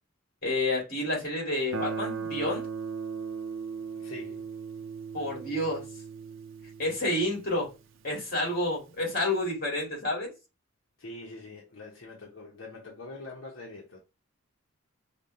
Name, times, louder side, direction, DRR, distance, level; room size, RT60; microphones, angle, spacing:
voice 1, 0.4-2.6 5.1-5.8 6.8-7.7 8.0-10.3, left 1 dB, 45° left, 2.0 m, -29 dB
Guitar, 1.7-8.4, right 5 dB, 75° right, 0.5 m, -38 dB
voice 2, 4.0-4.4 11.0-14.0, left 2 dB, 75° left, 0.9 m, -44 dB
5.2 x 2.2 x 2.6 m
head